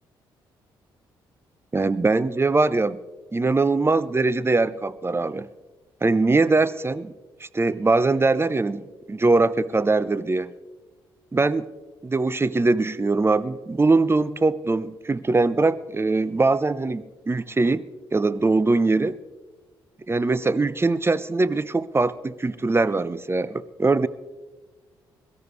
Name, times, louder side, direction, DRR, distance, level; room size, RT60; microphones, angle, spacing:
voice 1, 1.7-3.0 3.3-5.5 6.0-7.1 7.4-10.5 11.3-11.7 12.0-17.8 18.1-19.1 20.1-24.1, right 3 dB, 20° right, 18 dB, 0.7 m, -22 dB
22.5 x 13.0 x 3.2 m, 1.3 s
figure-of-eight pair, 40°, 12 cm